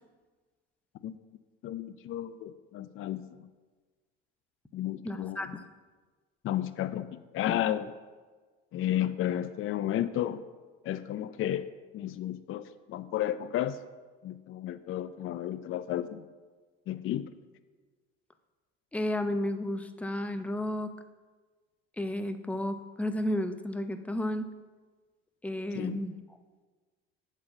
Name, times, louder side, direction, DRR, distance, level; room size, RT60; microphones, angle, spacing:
voice 1, 1.6-3.5 4.7-5.6 6.4-7.9 8.7-10.4 10.8-11.7 11.9-13.8 14.2-16.3 16.9-17.3 25.7-26.0, left 12 dB, 45° left, 13 dB, 0.5 m, -32 dB
voice 2, 5.0-5.6 18.9-20.9 22.0-24.5 25.4-26.1, left 1 dB, 5° left, 9 dB, 0.7 m, -32 dB
8.6 x 4.4 x 7.2 m, 1.4 s
hypercardioid pair, 75°, 30 cm